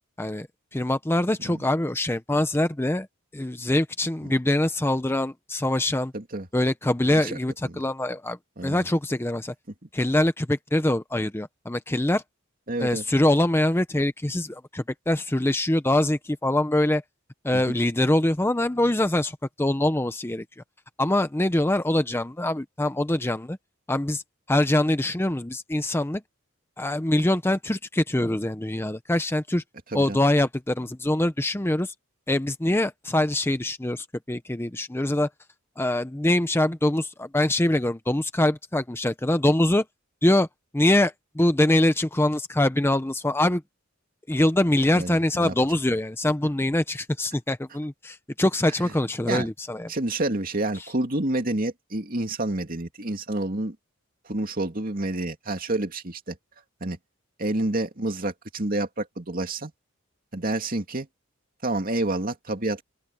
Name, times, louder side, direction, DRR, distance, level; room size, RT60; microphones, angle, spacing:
voice 1, 0.7-3.1 3.3-6.1 6.5-8.4 8.6-9.5 9.9-12.2 12.8-17.0 17.4-20.4 21.0-23.6 23.9-24.2 24.5-26.2 26.8-29.6 29.9-31.9 32.3-35.3 35.8-39.8 40.2-40.5 40.7-43.6 44.3-49.9, left 1 dB, 10° left, 0.7 m, -24 dB
voice 2, 6.1-6.5 7.1-7.8 8.6-8.9 12.7-13.0 17.5-17.8 29.9-30.2 44.9-45.5 48.8-48.9 49.3-49.5 49.9-53.8 54.2-56.4 56.8-57.0 57.4-59.7 60.3-61.1 61.6-62.8, right 2 dB, 45° right, 2.6 m, -29 dB
open air
head